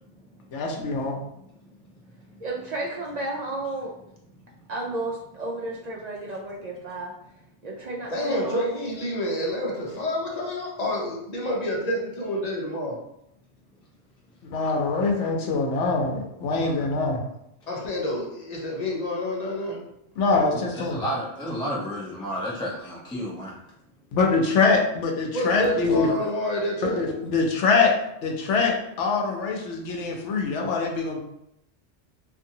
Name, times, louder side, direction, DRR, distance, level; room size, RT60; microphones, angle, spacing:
voice 1, 0.5-1.2 14.4-17.2 20.2-21.0 24.1-26.1 27.0-27.9 28.2-31.2, left 4 dB, 85° left, 1 dB, 0.9 m, -24 dB
voice 2, 2.4-3.9 4.7-7.1 7.6-8.7, right 2 dB, 60° right, -3 dB, 0.4 m, -32 dB
voice 3, 8.1-13.0 17.7-19.8 21.7-21.8 25.3-27.1, left 1 dB, 40° left, -2 dB, 0.7 m, -28 dB
voice 4, 20.5-23.5, equal, 5° left, -5 dB, 0.3 m, -31 dB
2.6 x 2.5 x 2.7 m, 0.78 s
omnidirectional pair, 1.2 m